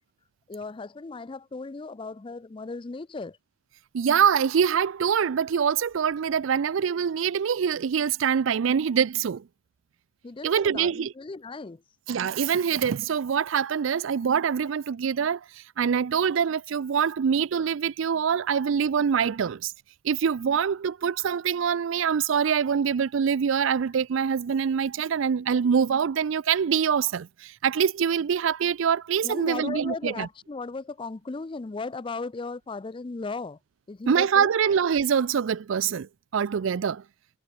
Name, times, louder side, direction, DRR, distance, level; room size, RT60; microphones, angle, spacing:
voice 1, 0.5-3.4 10.2-11.8 29.2-33.6 33.9-34.7, left 3 dB, 25° left, 0.4 m, -36 dB
voice 2, 3.9-9.4 10.4-11.1 12.1-19.7 20.0-30.3 34.1-37.0, right 7 dB, 65° right, 0.4 m, -24 dB
head